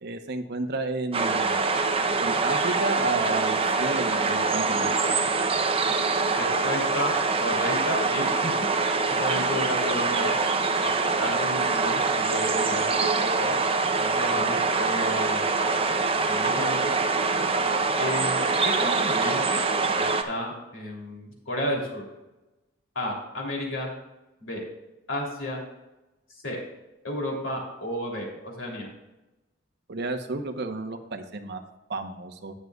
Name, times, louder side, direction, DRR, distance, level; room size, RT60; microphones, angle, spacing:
voice 1, 0.0-1.6 2.2-4.9 29.9-31.6 31.9-32.5, right 2 dB, 55° right, 6 dB, 1.0 m, -32 dB
sound 1, 1.1-20.2, right 4 dB, 30° right, 0.7 m, -24 dB
voice 2, 6.3-7.1 7.4-8.5 9.2-10.4 10.8-13.5 14.0-15.6 16.3-17.0 18.0-18.4 18.6-19.6 20.3-22.1 22.9-23.9 24.4-24.6 25.1-25.6 26.4-26.6 27.0-28.9, left 1 dB, 70° left, -2 dB, 3.2 m, -32 dB
18.5 x 6.6 x 2.4 m, 1.0 s
head